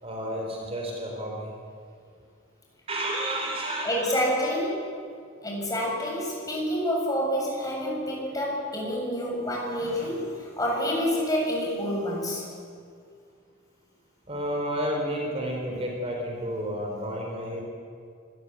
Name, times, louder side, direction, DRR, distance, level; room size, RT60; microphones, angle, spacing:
voice 1, 0.0-1.5 2.9-4.1 14.3-17.6, right 1 dB, 30° right, 0 dB, 3.8 m, -31 dB
voice 2, 3.8-5.0 5.4-12.5, equal, 20° left, -3 dB, 7.8 m, -28 dB
25.0 x 19.5 x 8.3 m, 2.2 s
head